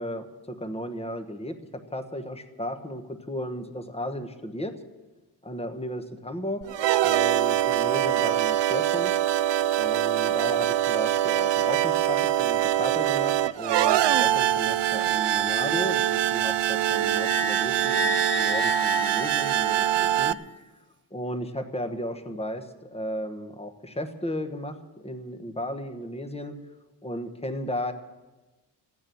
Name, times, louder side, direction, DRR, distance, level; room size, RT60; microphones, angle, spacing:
voice 1, 0.0-4.8 5.4-6.7 7.0-9.1 9.7-20.4 21.1-26.6 27.0-27.9, equal, 15° left, 7 dB, 1.1 m, -34 dB
sound 1, 6.6-20.3, right 12 dB, 80° right, 0.5 m, -24 dB
Wind instrument woodwind instrument, 16.9-20.4, left 3 dB, 30° right, 1.3 m, -32 dB
15.0 x 9.7 x 9.3 m, 1.2 s
wide cardioid pair, 150°, 42 cm